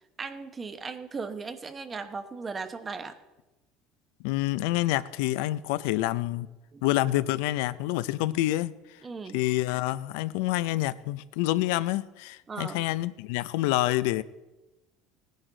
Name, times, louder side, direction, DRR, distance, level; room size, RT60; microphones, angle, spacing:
voice 1, 0.2-3.2 6.7-6.8 9.0-9.4 12.5-12.8, right 4 dB, 20° right, 0.9 m, -37 dB
voice 2, 4.2-6.5 6.8-9.0 9.3-14.2, left 16 dB, 85° left, 0.5 m, -27 dB
17.5 x 10.5 x 3.9 m
cardioid pair, 135°, 0 cm